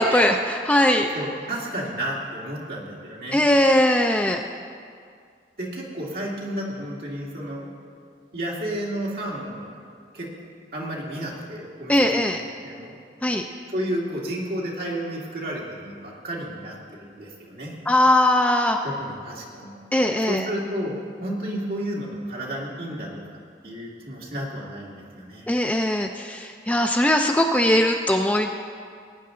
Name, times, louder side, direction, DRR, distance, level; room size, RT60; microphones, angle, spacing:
voice 1, 0.0-1.1 3.3-4.4 11.9-12.4 13.2-13.4 17.9-18.8 19.9-20.5 25.5-28.5, left 1 dB, 10° left, 4 dB, 0.4 m, -20 dB
voice 2, 1.1-3.4 5.6-7.7 8.3-9.8 10.1-12.4 12.6-12.9 13.7-17.7 18.8-19.8 20.2-20.9 21.2-23.2 23.6-25.5, right 1 dB, 55° right, -4 dB, 2.2 m, -32 dB
17.5 x 9.6 x 3.8 m, 2.2 s
head